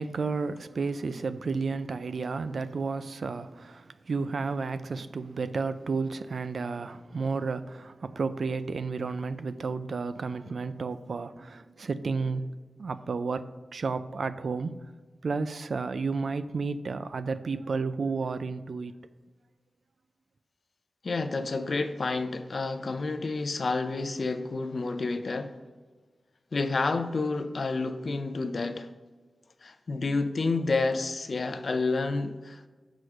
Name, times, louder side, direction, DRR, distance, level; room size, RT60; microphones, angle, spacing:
voice 1, 0.0-12.5 12.8-13.4 13.7-14.9 15.2-18.9, right 4 dB, 75° right, 0.4 m, -32 dB
voice 2, 21.0-25.5 26.5-28.9 29.6-32.7, left 3 dB, 60° left, 0.5 m, -29 dB
6.1 x 4.8 x 6.5 m
wide cardioid pair, 90°, 0 cm